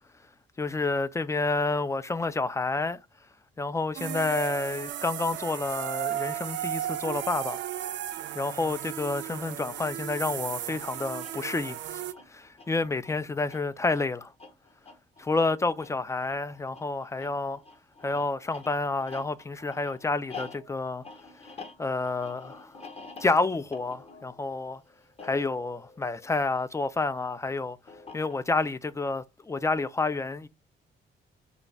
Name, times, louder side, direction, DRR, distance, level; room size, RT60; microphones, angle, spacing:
voice 1, 0.6-3.0 3.6-7.6 8.4-12.0 12.3-14.3 15.2-17.6 18.0-21.0 21.8-22.8 23.2-24.8 25.2-27.8 28.1-30.5, left 3 dB, 15° left, 0.3 m, -29 dB
sound 1, 3.9-12.1, right 11 dB, 65° right, 0.5 m, -35 dB
Metal Rhythm, 11.2-26.9 27.9-28.7, left 4 dB, 30° left, 0.9 m, -48 dB
3.8 x 2.2 x 3.3 m
cardioid pair, 90°, 20 cm